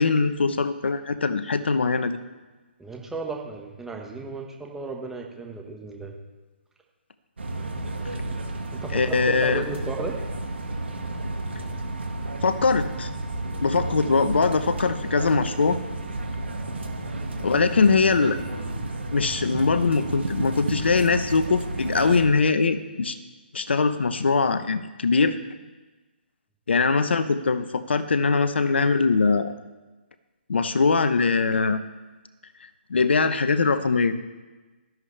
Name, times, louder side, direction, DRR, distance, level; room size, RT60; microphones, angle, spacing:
voice 1, 0.0-2.2 8.9-9.6 12.4-13.1 13.6-15.8 17.4-18.4 19.1-23.2 23.5-25.4 26.7-29.5 30.5-31.8 32.9-34.1, left 4 dB, 75° left, 11 dB, 0.9 m, -22 dB
voice 2, 2.8-6.1 8.3-8.4 8.7-10.2, right 4 dB, 5° right, 0 dB, 1.4 m, -35 dB
sound 1, 7.4-22.3, right 2 dB, 80° right, 1.8 m, -32 dB
13.5 x 10.5 x 3.4 m, 1.2 s
hypercardioid pair, 145°, 6 cm